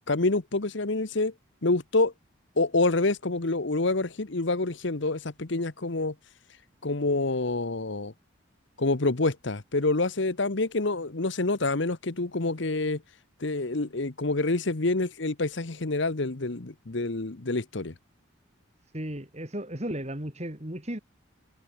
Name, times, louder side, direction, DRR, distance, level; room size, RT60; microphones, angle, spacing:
voice 1, 0.1-1.3 1.6-2.1 2.6-6.1 6.8-8.1 8.8-13.0 13.4-17.9, left 2 dB, 60° left, 1.1 m, -27 dB
voice 2, 18.8-21.0, right 1 dB, 30° right, 2.8 m, -35 dB
open air
head